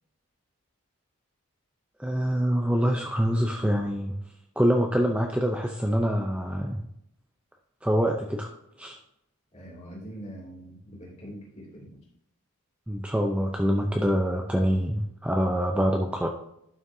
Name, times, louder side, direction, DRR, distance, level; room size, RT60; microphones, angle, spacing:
voice 1, 2.0-4.2 4.6-6.9 7.8-8.5 8.8-9.0 12.9-16.3, equal, 5° right, 2 dB, 0.5 m, -25 dB
voice 2, 9.5-12.0, equal, 30° left, -3 dB, 2.7 m, -43 dB
11.0 x 6.3 x 2.7 m, 0.76 s
head